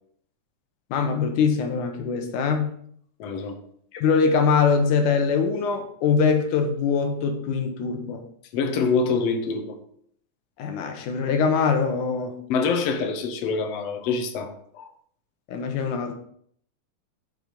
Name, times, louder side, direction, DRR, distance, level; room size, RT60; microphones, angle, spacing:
voice 1, 0.9-2.8 3.9-8.2 10.6-12.4 15.5-16.1, left 5 dB, 80° left, 5 dB, 2.5 m, -23 dB
voice 2, 3.2-3.6 8.5-9.8 12.5-14.9, left 4 dB, 60° left, 5 dB, 2.0 m, -25 dB
7.9 x 6.2 x 5.3 m, 0.64 s
omnidirectional pair, 3.5 m